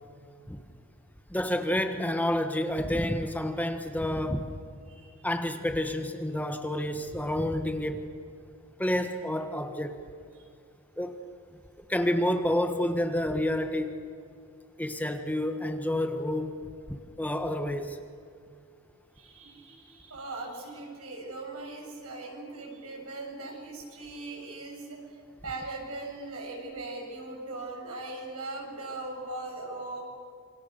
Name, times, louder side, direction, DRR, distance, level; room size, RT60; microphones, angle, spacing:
voice 1, 1.3-4.5 5.2-8.1 8.8-10.0 11.0-11.2 11.9-14.0 14.8-16.6 16.9-18.0, left 1 dB, 5° left, 6 dB, 1.3 m, -29 dB
voice 2, 19.1-30.0, right 2 dB, 75° right, 0 dB, 7.0 m, -40 dB
28.0 x 25.0 x 6.9 m, 2.3 s
head